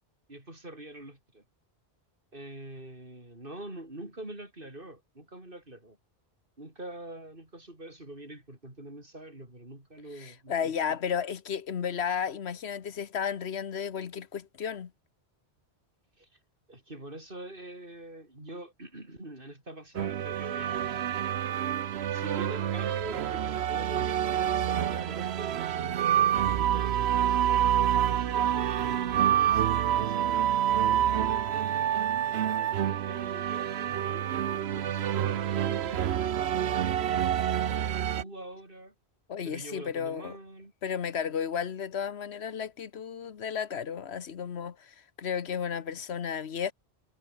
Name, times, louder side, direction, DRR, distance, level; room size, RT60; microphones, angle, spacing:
voice 1, 0.3-1.4 2.3-6.0 6.6-11.0 16.2-16.3 16.7-21.1 22.1-30.4 30.8-37.2 37.6-38.9 39.4-40.7, right 1 dB, 55° right, 6.1 m, -45 dB
voice 2, 10.2-14.9 39.3-40.4 40.8-46.7, left 7 dB, 80° left, 1.3 m, -33 dB
sound 1, 20.0-38.2, right 10 dB, 75° right, 1.0 m, -27 dB
omnidirectional pair, 1.1 m